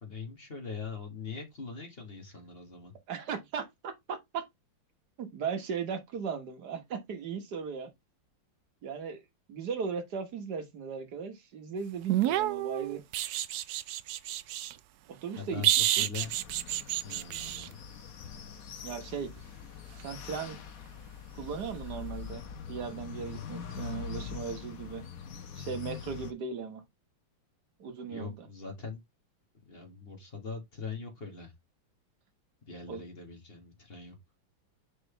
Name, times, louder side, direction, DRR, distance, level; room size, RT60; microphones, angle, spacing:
voice 1, 0.0-2.9 15.4-16.3 17.0-17.8 28.1-29.0 29.5-31.5 32.7-34.1, left 5 dB, 30° left, 2.0 m, -42 dB
voice 2, 3.1-4.5 5.2-7.9 8.8-9.2 9.5-13.0 15.1-15.6 16.0-16.1 18.8-19.3 20.0-20.6 21.3-25.1 25.6-26.8 27.8-28.5 32.9-33.0, right 6 dB, 55° right, 1.7 m, -37 dB
sound 1, 12.1-14.7 15.6-17.7 20.3-20.5, right 13 dB, 90° right, 0.8 m, -29 dB
sound 2, 16.2-26.3, left 7 dB, 55° left, 1.0 m, -43 dB
6.1 x 5.1 x 3.3 m
omnidirectional pair, 2.3 m